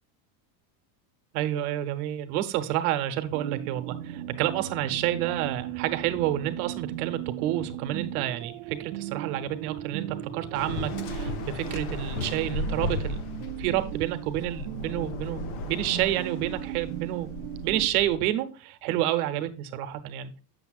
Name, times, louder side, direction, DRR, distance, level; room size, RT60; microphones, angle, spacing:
voice 1, 1.3-13.2 13.6-17.3 17.6-20.3, right 13 dB, 85° right, 8 dB, 1.0 m, -29 dB
sound 1, 3.3-17.9, right 17 dB, 60° right, 0.5 m, -38 dB
sound 2, 3.9-11.0, left 2 dB, 10° right, 0.6 m, -47 dB
Waves surf, 10.5-18.2, left 2 dB, 45° left, 0.7 m, -35 dB
6.9 x 6.8 x 2.4 m, 0.35 s
cardioid pair, 170°, 43 cm